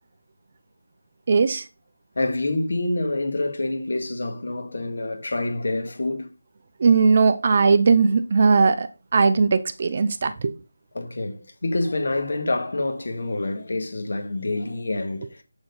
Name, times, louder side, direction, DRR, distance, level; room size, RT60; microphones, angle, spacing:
voice 1, 1.3-1.6 6.8-10.5, right 4 dB, 25° right, 0.4 m, -19 dB
voice 2, 2.2-6.3 10.9-15.4, left 2 dB, 50° left, 1.9 m, -27 dB
7.6 x 7.1 x 4.0 m
figure-of-eight pair, 175°, 0 cm